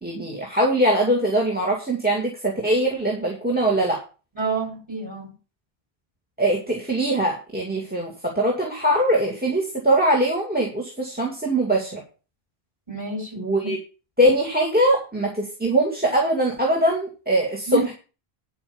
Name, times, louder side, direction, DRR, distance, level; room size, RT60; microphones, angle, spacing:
voice 1, 0.0-4.0 6.4-12.0 13.4-13.8 14.2-17.9, right 1 dB, 10° right, 1 dB, 2.3 m, -22 dB
voice 2, 4.3-5.3 12.9-13.7 17.7-17.9, right 4 dB, 25° right, 0 dB, 7.8 m, -28 dB
11.5 x 5.3 x 7.0 m, 0.34 s
omnidirectional pair, 1.0 m